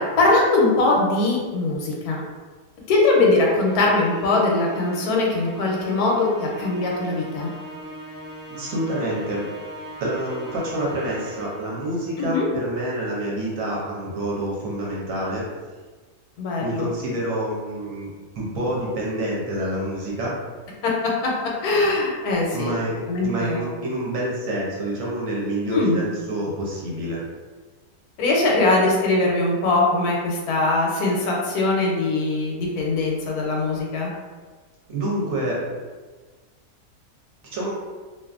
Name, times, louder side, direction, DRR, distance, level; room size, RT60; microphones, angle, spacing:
voice 1, 0.0-2.2 2.9-7.5 12.2-12.5 16.4-16.9 20.8-22.7 23.1-23.6 25.7-26.0 28.2-34.1, left 2 dB, 80° left, -2 dB, 1.1 m, -21 dB
Musical instrument, 3.4-11.8, equal, 40° right, 0.9 m, -40 dB
voice 2, 8.5-9.4 10.0-15.4 16.6-18.1 18.3-20.3 22.5-27.2 34.9-35.6 37.5-37.7, right 1 dB, 65° right, -4 dB, 1.0 m, -27 dB
2.5 x 2.5 x 2.3 m, 1.4 s
omnidirectional pair, 1.6 m